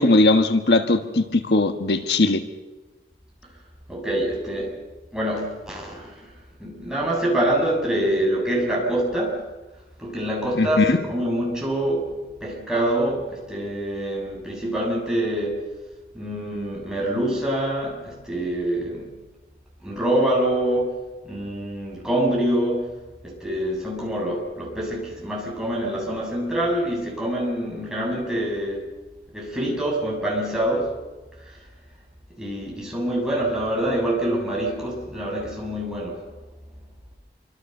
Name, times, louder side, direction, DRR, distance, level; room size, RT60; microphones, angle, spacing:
voice 1, 0.0-2.4 10.5-11.0, left 2 dB, 75° left, 7 dB, 1.4 m, -19 dB
voice 2, 3.9-4.8 5.1-6.3 6.6-9.4 10.0-15.7 16.1-19.2 19.8-20.9 21.2-22.9 23.2-28.9 29.3-30.9 31.4-31.6 32.4-36.2, right 1 dB, 5° right, -3 dB, 7.0 m, -25 dB
27.0 x 24.5 x 6.7 m, 1.2 s
head